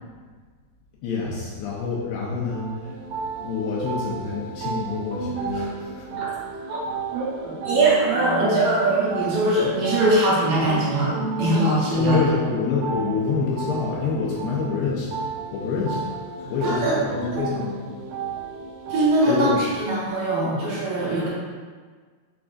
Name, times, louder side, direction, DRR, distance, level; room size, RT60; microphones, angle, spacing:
voice 1, 1.0-3.0 3.4-6.1 12.0-15.2 15.5-16.1 16.5-17.7 19.3-19.6, left 5 dB, 80° left, -5 dB, 2.2 m, -27 dB
sound 1, 2.5-19.3, right 3 dB, 90° right, 1.8 m, -32 dB
voice 2, 7.1-12.2 16.4-16.9 17.3-17.4 18.9-21.3, right 1 dB, 70° right, -7 dB, 2.6 m, -22 dB
6.1 x 3.4 x 2.4 m, 1.5 s
omnidirectional pair, 4.6 m